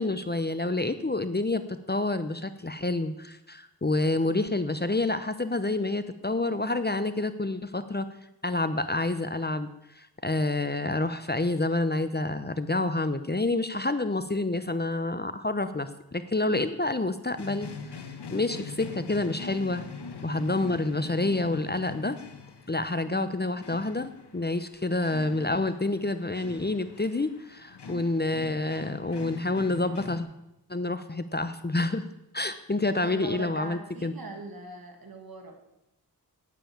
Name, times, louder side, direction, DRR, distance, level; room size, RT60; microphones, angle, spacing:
voice 1, 0.0-8.0 8.4-9.7 10.0-18.0 18.3-19.8 20.2-22.2 22.7-30.3 30.7-32.0 32.3-34.1, left 2 dB, 25° left, 11 dB, 0.9 m, -28 dB
sound 1, 17.4-30.2, left 4 dB, 75° left, 1.4 m, -43 dB
voice 2, 33.0-35.6, right 3 dB, 60° right, 4 dB, 2.5 m, -40 dB
9.5 x 9.1 x 8.8 m, 0.86 s
cardioid pair, 50°, 41 cm